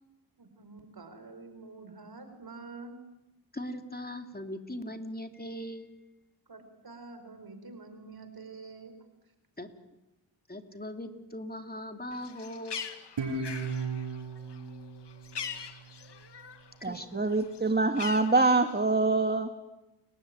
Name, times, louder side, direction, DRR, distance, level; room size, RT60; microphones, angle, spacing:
voice 1, 0.4-3.0 6.5-8.9, right 3 dB, 55° right, 8 dB, 5.1 m, -47 dB
voice 2, 3.5-5.9 9.6-9.7 10.5-12.8 16.8-17.3, left 1 dB, 20° left, 6 dB, 2.8 m, -40 dB
Bird, 12.1-16.7 17.0-19.0, left 7 dB, 65° left, 2.0 m, -42 dB
Guitar, 13.2-16.4, right 4 dB, 75° right, 6.8 m, -36 dB
voice 3, 16.8-19.5, right 3 dB, 20° right, 7 dB, 1.7 m, -25 dB
30.0 x 14.5 x 9.4 m, 1.0 s
cardioid pair, 50°, 44 cm